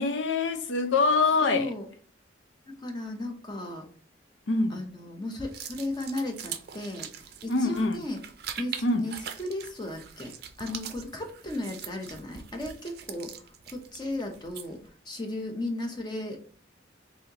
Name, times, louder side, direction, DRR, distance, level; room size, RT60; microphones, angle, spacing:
voice 1, 0.0-1.7 4.5-4.8 7.5-8.0 8.8-9.1, left 3 dB, 80° left, 0.6 m, -25 dB
voice 2, 1.4-1.9 2.7-3.8 4.7-7.1 7.4-8.2 8.6-13.3 13.7-14.8 15.1-16.6, left 1 dB, 25° left, 0.7 m, -35 dB
sound 1, 5.5-14.9, right 8 dB, 55° right, 0.5 m, -42 dB
4.1 x 2.8 x 2.9 m
head